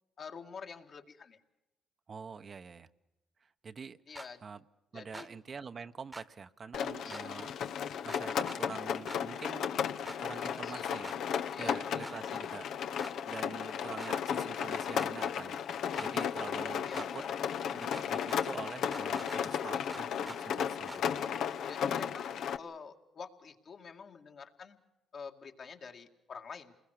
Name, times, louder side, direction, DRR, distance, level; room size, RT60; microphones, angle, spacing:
voice 1, 0.2-1.4 4.1-4.4 4.9-5.3 7.0-7.3 10.5-11.0 11.5-11.8 16.1-16.2 16.6-17.3 21.3-22.3 22.6-24.8 25.1-26.7, left 5 dB, 55° left, 4 dB, 2.2 m, -48 dB
voice 2, 2.1-2.9 3.4-4.6 4.9-7.5 8.0-9.7 10.2-11.2 11.6-13.0 13.3-15.6 16.0-17.2 17.6-21.2, right 5 dB, 40° right, 10 dB, 0.9 m, -46 dB
sound 1, 4.2-4.3 5.1-5.3 6.1-6.3 7.1-7.2 8.1-8.6 9.1-9.2 10.1-10.2 11.0-11.2 12.0-12.2 13.0-13.2 14.0-14.1 15.0-15.1 16.0-16.1 16.9-17.1 17.9-18.4 18.9-19.4 19.9-20.4 20.9-21.0, right 2 dB, 10° right, 1.3 m, -46 dB
Rain, 6.7-22.6, left 8 dB, 75° left, 1.0 m, -34 dB
28.5 x 21.0 x 6.6 m, 0.96 s
cardioid pair, 90°, 0 cm